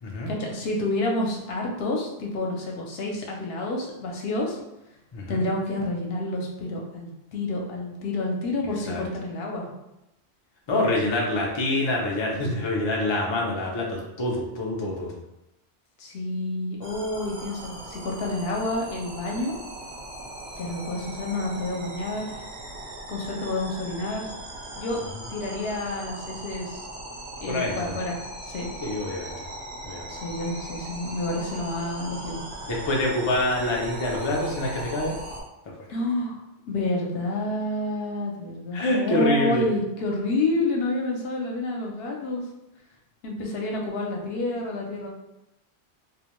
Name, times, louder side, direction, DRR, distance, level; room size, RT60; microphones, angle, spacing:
voice 1, 0.3-4.6 5.3-9.7 16.0-19.6 20.6-22.3 23.1-24.3 24.8-25.0 25.3-26.8 27.4-28.2 28.4-28.7 30.1-32.4 35.9-36.4 36.7-42.4 43.2-45.1, left 2 dB, 70° left, 0 dB, 0.8 m, -29 dB
voice 2, 5.1-5.4 8.9-9.0 10.7-15.1 27.5-28.0 28.8-29.3 29.8-30.1 32.7-35.2 38.7-39.6, left 1 dB, 50° left, -2 dB, 0.3 m, -26 dB
sound 1, 16.8-35.4, right 1 dB, 80° right, 1.0 m, -39 dB
2.4 x 2.1 x 2.9 m, 0.89 s
omnidirectional pair, 1.1 m